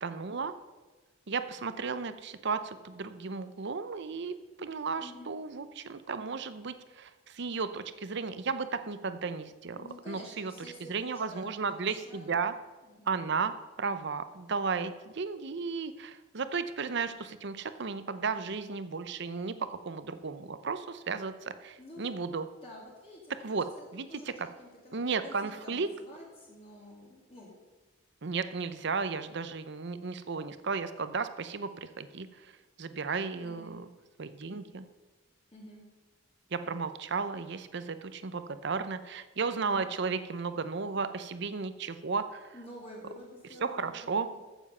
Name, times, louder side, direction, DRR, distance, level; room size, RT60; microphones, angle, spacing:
voice 1, 0.0-0.5 1.3-4.3 4.6-10.5 10.9-12.5 13.1-22.5 23.4-23.7 23.9-24.5 24.9-25.9 28.2-32.3 32.8-33.9 34.2-34.9 36.5-42.5 43.6-44.3, right 5 dB, 60° right, 11 dB, 0.7 m, -34 dB
voice 2, 5.0-5.3 9.7-12.4 12.8-13.1 21.8-22.1 22.6-27.5 33.4-33.8 35.5-35.8 39.6-39.9 42.5-44.4, left 1 dB, 30° left, -4 dB, 2.4 m, -49 dB
14.5 x 7.2 x 5.5 m, 1.3 s
head